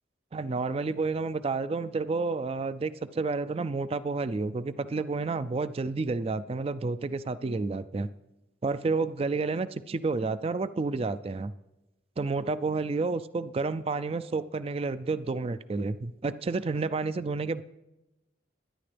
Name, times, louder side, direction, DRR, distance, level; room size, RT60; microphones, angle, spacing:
voice 1, 0.3-8.1 8.6-11.5 12.2-17.6, right 3 dB, 30° right, 14 dB, 0.3 m, -30 dB
22.0 x 10.5 x 3.4 m, 0.96 s
head